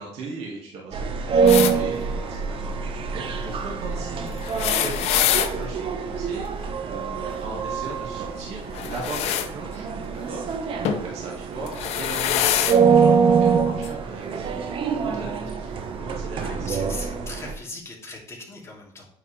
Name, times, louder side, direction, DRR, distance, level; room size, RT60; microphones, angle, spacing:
voice 1, 0.0-9.9 10.1-14.7 15.0-16.7, right 3 dB, 80° right, -3 dB, 2.1 m, -38 dB
sound 1, 0.9-17.5, right 6 dB, 55° right, 1.0 m, -25 dB
sound 2, 1.5-1.7 4.4-5.5 8.7-9.5 10.8-11.1 11.7-12.8 13.8-13.9 15.1-15.2, left 11 dB, 75° left, 0.7 m, -24 dB
voice 2, 16.3-19.1, left 3 dB, 25° left, -3 dB, 3.0 m, -39 dB
9.3 x 5.0 x 3.5 m, 0.71 s
cardioid pair, 100°, 11 cm